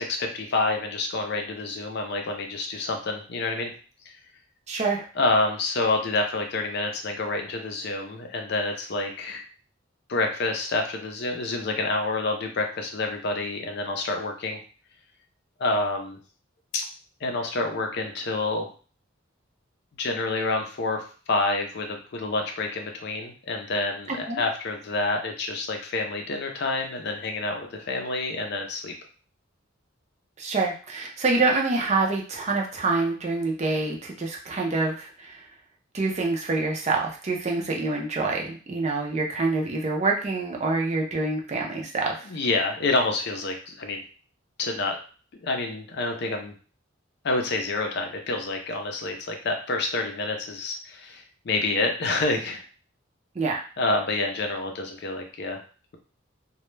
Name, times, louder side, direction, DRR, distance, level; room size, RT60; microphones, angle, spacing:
voice 1, 0.0-3.7 5.2-9.4 10.1-14.6 15.6-16.2 16.7-16.8 17.2-18.7 20.0-28.9 42.3-44.0 44.6-45.0 45.4-46.5 47.2-52.6 53.8-55.6, left 2 dB, 55° left, 3 dB, 0.5 m, -28 dB
voice 2, 4.7-5.0 24.1-24.4 30.4-35.4 35.9-42.3 53.4-53.6, right 3 dB, 35° right, 0 dB, 0.4 m, -26 dB
2.2 x 2.0 x 3.1 m, 0.39 s
head